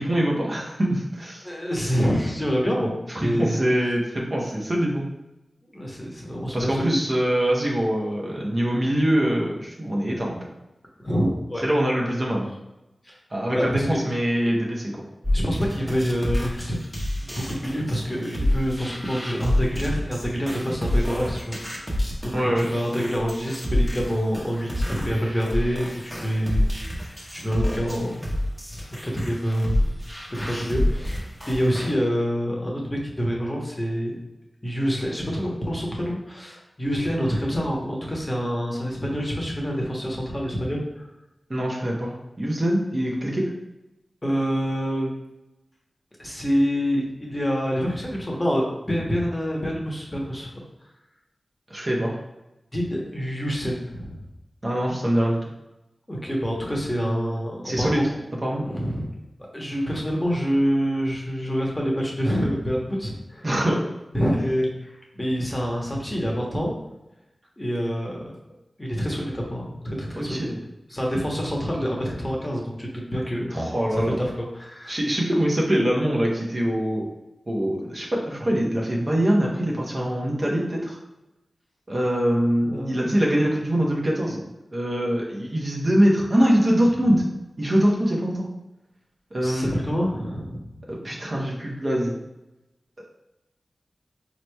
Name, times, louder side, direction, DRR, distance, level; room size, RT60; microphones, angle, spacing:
voice 1, 0.0-1.5 3.1-5.0 6.5-10.5 11.6-12.5 13.3-14.9 22.3-22.7 41.5-43.5 51.7-52.2 54.6-55.4 57.6-58.0 58.4-58.6 63.4-63.8 70.2-70.6 73.5-74.2 74.9-77.1 77.5-81.0 81.9-84.4 84.7-87.2 87.6-88.5 89.3-89.9 90.9-92.2, equal, 40° right, -3 dB, 0.8 m, -23 dB
voice 2, 1.4-2.9 3.2-3.6 5.7-6.9 11.0-11.6 13.0-13.2 13.5-14.0 15.3-16.8 17.1-21.9 22.2-27.0 27.3-28.3 29.0-29.9 30.3-34.2 34.6-41.1 44.2-45.1 46.2-50.5 52.7-54.2 56.1-58.0 58.6-59.1 59.5-63.5 64.1-66.7 67.6-68.3 68.8-70.4 70.9-73.6 73.9-74.9 82.6-83.1 89.4-90.6, equal, 20° left, -2 dB, 0.9 m, -26 dB
sound 1, 15.2-31.9, left 1 dB, 5° right, 0.8 m, -28 dB
4.0 x 3.0 x 2.2 m, 0.97 s
cardioid pair, 55°, 0 cm